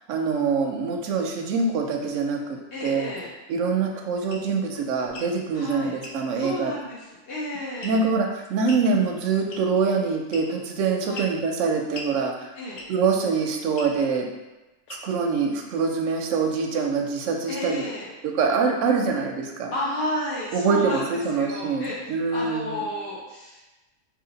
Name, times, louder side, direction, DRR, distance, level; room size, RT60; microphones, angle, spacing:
voice 1, 0.1-3.1 3.5-6.7 7.8-12.3 12.9-14.3 15.0-17.9 18.2-19.7 20.5-22.8, right 5 dB, 70° right, 2 dB, 0.9 m, -24 dB
voice 2, 2.7-3.3 5.5-5.9 6.3-8.1 11.0-11.2 12.5-12.8 17.5-18.1 19.7-22.0 22.3-23.6, left 1 dB, 50° left, -7 dB, 0.8 m, -32 dB
sound 1, 4.3-4.5 5.1-5.3 6.0-6.2 7.8-8.2 8.7-8.9 9.5-9.8 10.3-10.7 11.1-11.4 11.9-12.1 12.8-13.1 13.8-14.0 14.9-15.2, left 2 dB, 85° left, 1.1 m, -39 dB
3.0 x 2.8 x 3.8 m, 1.1 s
omnidirectional pair, 1.5 m